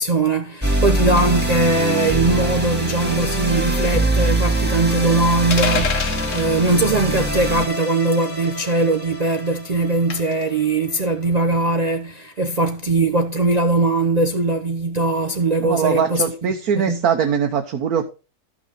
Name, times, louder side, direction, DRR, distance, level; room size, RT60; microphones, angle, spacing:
voice 1, 0.0-17.1, right 2 dB, 40° right, 0.6 m, -20 dB
sound 1, 0.6-11.0, right 1 dB, 5° right, 2.1 m, -23 dB
sound 2, 5.5-6.5 8.1-8.4 10.1-10.4, left 5 dB, 55° left, 1.4 m, -25 dB
voice 2, 15.6-18.1, right 7 dB, 75° right, 1.4 m, -21 dB
13.0 x 6.3 x 4.0 m
omnidirectional pair, 1.6 m